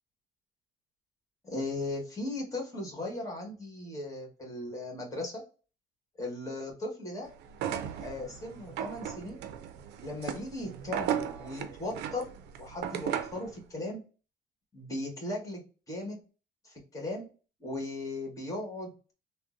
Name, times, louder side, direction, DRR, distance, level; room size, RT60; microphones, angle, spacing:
voice 1, 1.4-5.4 6.2-7.3 8.0-9.4 10.0-12.3 12.6-14.0 14.7-16.2 16.6-17.3 17.6-18.9, left 2 dB, 20° left, -1 dB, 1.4 m, -37 dB
sound 1, 7.5-13.5, right 9 dB, 85° right, 0.4 m, -36 dB
3.5 x 2.1 x 2.5 m, 0.36 s
cardioid pair, 110°, 17 cm